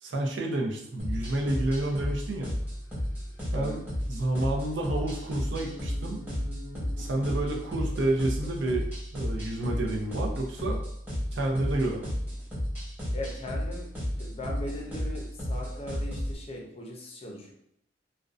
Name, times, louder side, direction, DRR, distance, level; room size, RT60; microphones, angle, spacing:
voice 1, 0.0-2.5 3.5-3.8 4.1-6.2 7.0-8.9 9.1-10.8 11.3-12.1, right 1 dB, 80° right, 0 dB, 0.5 m, -29 dB
sound 1, 0.8-8.7 9.3-10.3, left 1 dB, 90° left, 0.6 m, -49 dB
sound 2, 1.0-16.4, equal, 10° right, 0.9 m, -33 dB
voice 2, 13.1-17.5, left 1 dB, 30° left, 0 dB, 0.5 m, -39 dB
2.5 x 2.1 x 2.4 m, 0.77 s
head